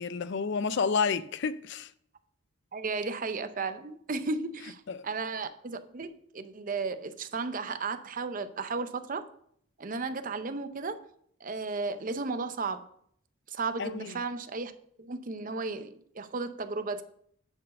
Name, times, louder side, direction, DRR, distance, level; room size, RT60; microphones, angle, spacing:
voice 1, 0.0-1.9 4.9-5.0 13.8-14.1, left 5 dB, 55° left, 0.4 m, -30 dB
voice 2, 2.7-9.2 9.8-11.0 11.4-12.8 13.5-14.7 15.0-17.0, right 4 dB, 40° right, 0.6 m, -34 dB
9.6 x 4.6 x 5.3 m
head